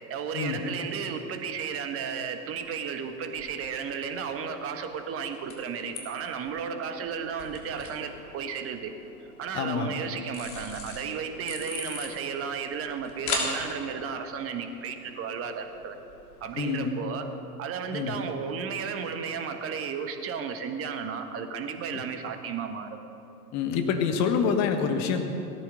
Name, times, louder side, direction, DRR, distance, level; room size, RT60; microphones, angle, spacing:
voice 1, 0.1-8.9 9.4-16.0 16.4-17.3 17.6-23.0, right 6 dB, 30° right, 6 dB, 1.4 m, -34 dB
sound 1, 2.4-16.5, left 3 dB, 60° left, 3.5 m, -41 dB
voice 2, 9.5-9.9 16.6-16.9 17.9-18.2 21.9-22.0 23.5-25.3, left 6 dB, 35° left, 5 dB, 1.7 m, -27 dB
17.0 x 13.5 x 5.2 m, 2.8 s
figure-of-eight pair, 95°, 48 cm